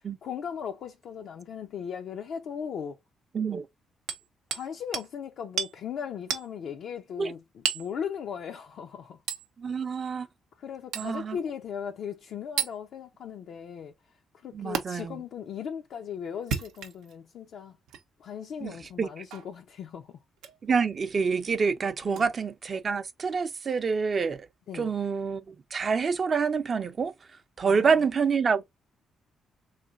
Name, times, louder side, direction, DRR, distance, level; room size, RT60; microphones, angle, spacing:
voice 1, 0.2-3.0 4.5-9.2 10.6-13.9 14.4-17.8 18.2-20.1 22.0-22.2 24.7-24.9 27.6-27.9, left 7 dB, 70° left, 0.4 m, -38 dB
voice 2, 3.3-3.7 7.2-7.3 9.6-10.3 11.0-11.4 14.5-15.2 18.6-19.2 20.6-24.5 24.7-27.1 27.6-28.6, right 5 dB, 40° right, 0.5 m, -27 dB
Hammer, 4.1-4.7 4.9-5.1 5.6-5.7 6.3-6.5 7.6-7.9 9.3-9.5 10.9-11.1 12.6-12.7 14.7-14.8 16.3-17.1 17.9-18.0 19.3-19.5 20.4-20.6 22.1-22.2, right 8 dB, 90° right, 0.6 m, -32 dB
3.8 x 3.2 x 2.4 m
cardioid pair, 90°, 0 cm